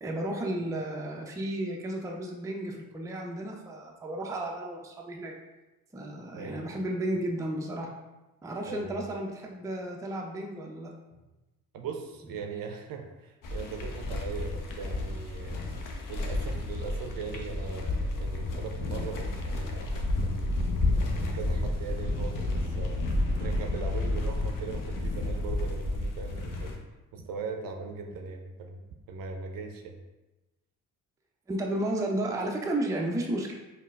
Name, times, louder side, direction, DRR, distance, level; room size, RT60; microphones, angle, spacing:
voice 1, 0.0-5.3 5.9-7.9 8.4-10.9 31.5-33.5, right 1 dB, 5° right, 0 dB, 0.5 m, -33 dB
voice 2, 6.3-6.7 8.6-9.1 11.7-15.6 16.1-20.7 21.2-23.0 23.4-26.8 27.1-28.8 29.1-30.0, right 5 dB, 50° right, 4 dB, 0.6 m, -40 dB
sound 1, 13.4-26.8, left 2 dB, 45° left, 0.7 m, -31 dB
Sliding door, 18.7-19.6 20.2-20.3 20.9-25.7, left 1 dB, 75° left, 1.1 m, -50 dB
5.4 x 2.2 x 2.4 m, 1.1 s
figure-of-eight pair, 40°, 45 cm